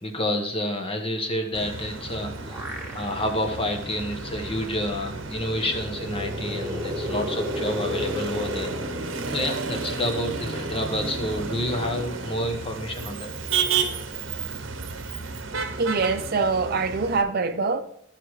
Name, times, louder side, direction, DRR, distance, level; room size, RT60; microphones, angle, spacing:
voice 1, 0.0-8.7 9.0-13.3, left 1 dB, 30° left, 1.2 m, -29 dB
Motor vehicle (road), 1.5-17.2, right 4 dB, 75° right, 0.9 m, -32 dB
sound 1, 2.1-3.5 3.9-4.0 5.3-10.1, left 1 dB, 5° right, 2.2 m, -34 dB
voice 2, 15.8-17.8, right 4 dB, 50° right, 0.6 m, -24 dB
12.5 x 5.8 x 3.2 m
head